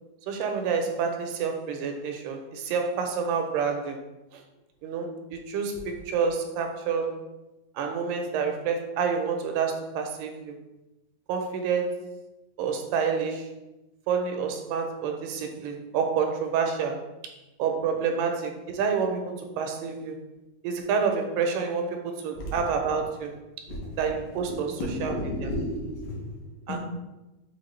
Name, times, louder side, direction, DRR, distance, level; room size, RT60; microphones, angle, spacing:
voice 1, 0.3-4.0 4.3-4.4 4.8-7.1 7.8-10.5 11.3-12.0 12.6-13.5 14.1-17.0 17.6-20.2 20.6-23.3 24.0-24.7 25.0-25.1 25.4-25.5 26.7-26.8, right 6 dB, 85° right, 2.1 m, -28 dB
voice 2, 23.7-24.0 24.5-26.8, left 1 dB, 75° left, 2.3 m, -33 dB
5.6 x 2.4 x 3.1 m
omnidirectional pair, 3.8 m